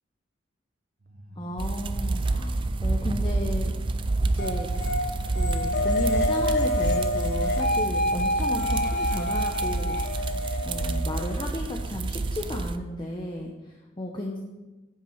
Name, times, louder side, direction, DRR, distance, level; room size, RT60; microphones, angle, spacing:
sound 1, 1.0-8.4, right 1 dB, 50° right, 0.9 m, -43 dB
voice 1, 1.4-3.7 4.3-4.7 5.3-10.0 10.6-14.4, left 1 dB, 25° left, 0 dB, 0.8 m, -34 dB
sound 2, 1.6-12.8, right 2 dB, 25° right, 0.3 m, -28 dB
sound 3, 4.4-11.9, left 1 dB, 55° left, 1.2 m, -28 dB
9.6 x 5.9 x 5.8 m, 1.1 s
head